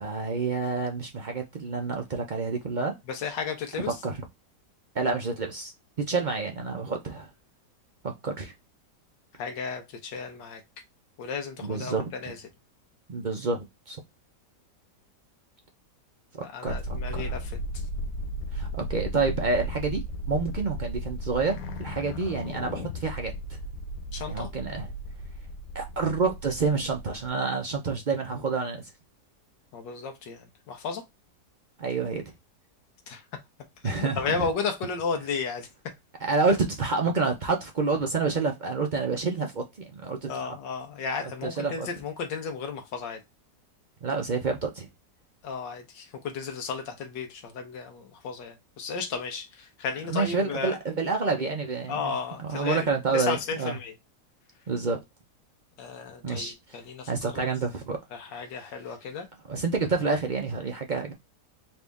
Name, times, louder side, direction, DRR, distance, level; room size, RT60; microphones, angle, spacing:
voice 1, 0.0-2.9 3.9-4.2 4.9-5.7 6.0-7.3 8.0-8.5 11.6-12.1 13.1-14.0 16.4-17.3 18.5-20.0 20.3-23.3 24.3-24.9 25.7-28.9 31.8-32.2 33.8-34.4 36.2-40.6 41.4-41.9 44.0-44.9 50.1-52.1 52.4-53.8 54.7-55.0 56.2-56.8 57.1-58.0 59.5-61.1, right 4 dB, 65° right, 0.4 m, -28 dB
voice 2, 3.1-4.0 9.4-10.6 11.2-12.4 16.4-17.8 24.1-24.5 29.7-31.0 33.1-33.2 33.8-35.7 40.3-43.2 45.4-50.8 51.9-52.9 53.1-53.9 55.8-57.5 58.1-59.3, left 5 dB, 90° left, 1.7 m, -34 dB
sound 1, 16.7-27.3, equal, 65° left, 1.1 m, -35 dB
4.2 x 2.6 x 3.4 m
omnidirectional pair, 1.9 m